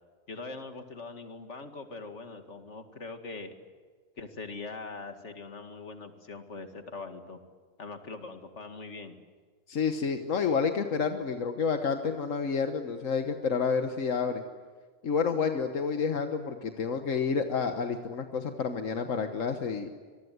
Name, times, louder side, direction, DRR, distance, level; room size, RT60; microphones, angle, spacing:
voice 1, 0.3-3.5 4.2-7.4 7.8-9.2, left 3 dB, 65° left, 6 dB, 2.4 m, -42 dB
voice 2, 9.7-14.4 15.0-19.9, left 5 dB, 85° left, 6 dB, 1.7 m, -29 dB
25.5 x 23.0 x 9.5 m, 1.5 s
omnidirectional pair, 1.3 m